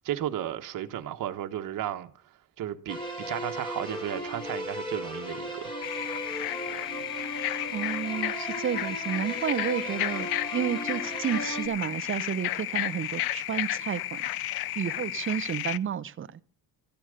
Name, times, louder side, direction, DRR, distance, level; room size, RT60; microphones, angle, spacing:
voice 1, 0.0-2.1 2.6-5.7, right 11 dB, 60° right, 1.4 m, -34 dB
sound 1, 2.9-11.7, equal, 15° left, 4.8 m, -36 dB
sound 2, 5.8-15.8, left 15 dB, 85° left, 0.6 m, -33 dB
voice 2, 7.7-14.2 14.8-16.4, right 9 dB, 35° right, 0.7 m, -31 dB
14.5 x 10.5 x 6.6 m
cardioid pair, 145°, 35 cm